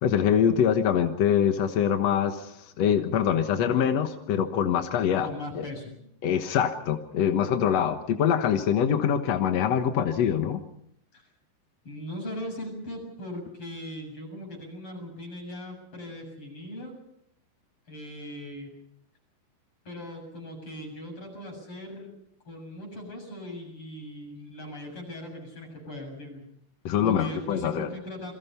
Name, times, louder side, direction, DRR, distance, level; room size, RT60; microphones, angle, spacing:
voice 1, 0.0-5.3 5.5-5.6 6.2-10.6 26.8-27.9, left 8 dB, 65° left, 7 dB, 1.6 m, -24 dB
voice 2, 5.2-6.0 11.1-11.3 11.8-17.0 17.9-18.7 19.8-22.2 22.5-26.4 27.0-28.3, left 1 dB, 30° left, 3 dB, 7.9 m, -39 dB
28.5 x 23.0 x 5.6 m, 0.72 s
omnidirectional pair, 4.7 m